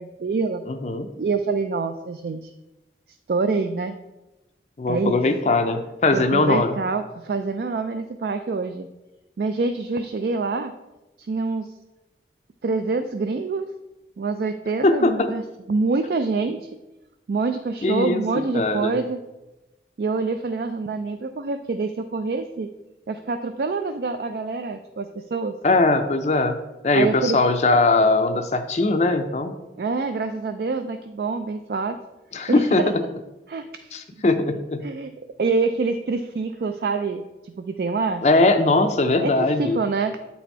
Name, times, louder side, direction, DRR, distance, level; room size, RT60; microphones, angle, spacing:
voice 1, 0.0-0.6 1.2-2.5 3.3-3.9 4.9-5.2 6.1-8.9 9.4-10.7 11.2-11.7 12.6-13.7 14.2-15.4 15.7-16.7 17.3-19.2 20.0-22.7 23.1-25.6 26.9-27.4 29.8-32.0 32.5-32.9 33.5-33.9 34.8-35.1 35.4-37.2 37.6-38.2 39.2-40.2, right 4 dB, 60° right, 8 dB, 0.3 m, -26 dB
voice 2, 0.7-1.1 4.8-6.7 14.8-15.3 17.8-18.2 18.5-19.0 25.6-26.6 26.8-29.5 32.3-33.0 33.9-34.8 38.2-39.8, left 2 dB, 40° left, 7 dB, 0.4 m, -20 dB
8.4 x 4.2 x 4.5 m, 1.0 s
head